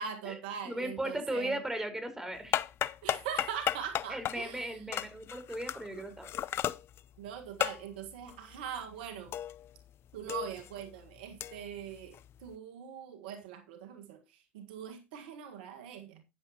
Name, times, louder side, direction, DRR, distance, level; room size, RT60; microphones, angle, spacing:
voice 1, 0.0-1.6 3.0-4.7 7.2-9.4 10.1-16.2, right 8 dB, 80° right, 1.7 m, -42 dB
voice 2, 0.6-2.6 4.1-6.3, right 1 dB, 10° right, 4.7 m, -37 dB
sound 1, 2.3-9.9 10.1-12.5, left 11 dB, 50° left, 0.6 m, -36 dB
13.5 x 9.8 x 3.0 m
hypercardioid pair, 75°, 5 cm